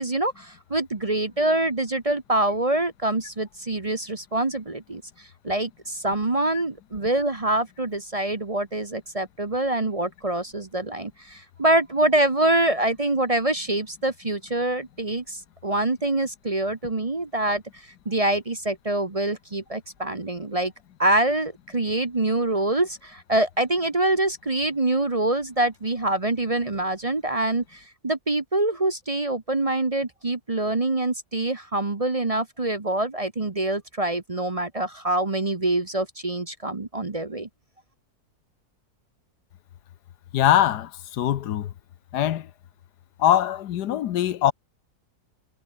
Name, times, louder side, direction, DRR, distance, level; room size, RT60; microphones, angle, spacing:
voice 1, 0.0-17.6 18.0-20.7 21.0-37.5, right 2 dB, 25° right, 1.1 m, -25 dB
voice 2, 40.3-41.7 42.1-42.5 43.2-44.5, left 11 dB, 85° left, 1.4 m, -22 dB
omnidirectional pair, 1.7 m